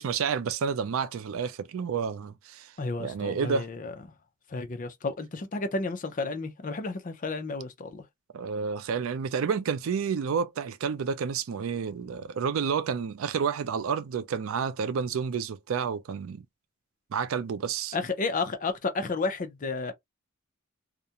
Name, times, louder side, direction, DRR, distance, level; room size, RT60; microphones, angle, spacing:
voice 1, 0.0-2.7 3.0-3.7 8.3-16.4 17.1-18.0, right 6 dB, 75° right, 0.4 m, -30 dB
voice 2, 2.8-3.9 4.5-8.0 17.9-19.9, left 3 dB, 40° left, 0.5 m, -32 dB
2.4 x 2.1 x 2.7 m
head